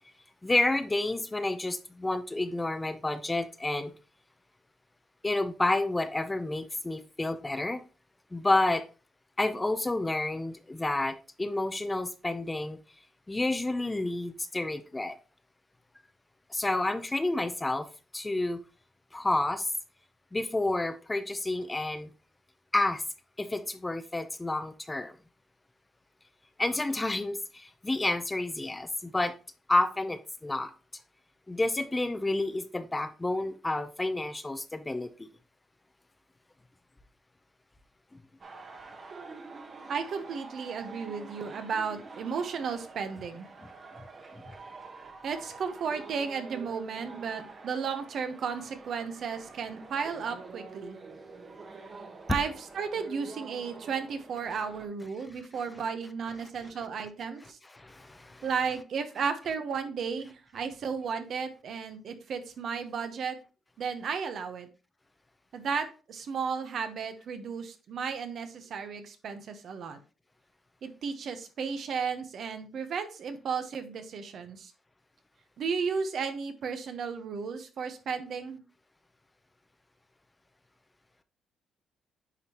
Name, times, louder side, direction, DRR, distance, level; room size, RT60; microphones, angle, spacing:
voice 1, 0.4-3.9 5.2-7.8 8.3-8.9 9.4-12.8 13.3-15.2 16.5-17.9 18.1-18.6 19.1-19.7 20.3-22.1 22.7-23.0 23.4-25.1 26.6-29.3 29.7-30.7 31.5-35.3 56.4-56.5 57.7-58.4, left 2 dB, 15° left, 0.6 m, -30 dB
sound 1, 38.4-54.9, right 4 dB, 40° right, 1.2 m, -46 dB
voice 2, 39.9-43.5 45.2-51.0 52.3-57.6 58.4-63.4 63.8-64.7 65.5-70.0 70.8-74.7 75.6-78.6, right 6 dB, 60° right, 1.0 m, -34 dB
9.6 x 3.8 x 3.0 m
cardioid pair, 90°, 0 cm